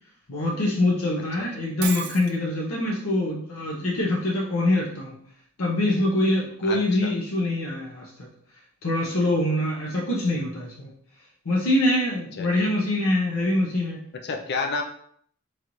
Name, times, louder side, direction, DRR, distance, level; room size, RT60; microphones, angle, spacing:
voice 1, 0.3-5.1 5.6-8.3 8.8-10.9 11.4-14.0, left 1 dB, 85° left, -4 dB, 0.8 m, -24 dB
Shatter, 1.8-2.4, right 9 dB, 50° right, 0.4 m, -32 dB
voice 2, 6.6-7.1 12.4-12.7 14.2-14.8, left 4 dB, 50° left, 3 dB, 0.6 m, -30 dB
3.9 x 3.2 x 3.0 m, 0.63 s
head